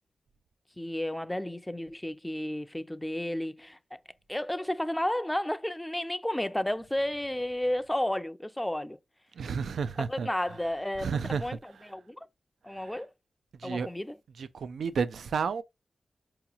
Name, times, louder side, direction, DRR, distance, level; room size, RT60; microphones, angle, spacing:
voice 1, 0.8-4.0 4.3-9.0 10.0-12.3 12.6-13.1 13.6-14.1, left 1 dB, 10° left, 0.4 m, -32 dB
voice 2, 9.4-10.3 11.0-11.4 12.7-13.0 13.6-13.9 14.4-15.6, right 6 dB, 85° right, 0.3 m, -31 dB
4.6 x 2.9 x 2.4 m
cardioid pair, 55°, 0 cm